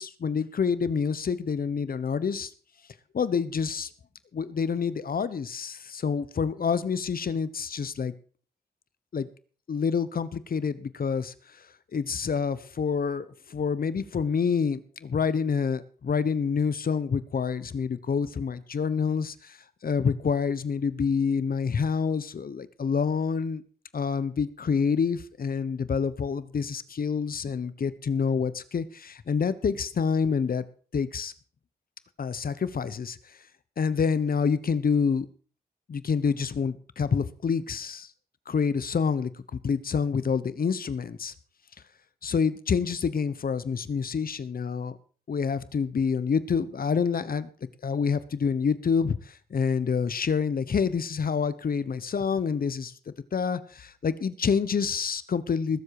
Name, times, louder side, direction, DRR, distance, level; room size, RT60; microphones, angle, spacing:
voice 1, 0.0-2.5 3.1-3.9 4.3-8.1 9.1-9.3 9.7-11.3 11.9-19.6 19.8-23.6 23.9-30.6 30.9-31.3 32.2-33.2 33.8-35.3 35.9-38.1 38.5-41.3 42.2-45.0 45.3-47.5 47.8-52.9 53.3-55.8, left 6 dB, 65° left, 15 dB, 1.1 m, -27 dB
20.5 x 7.6 x 4.9 m, 0.41 s
cardioid pair, 65°, 16 cm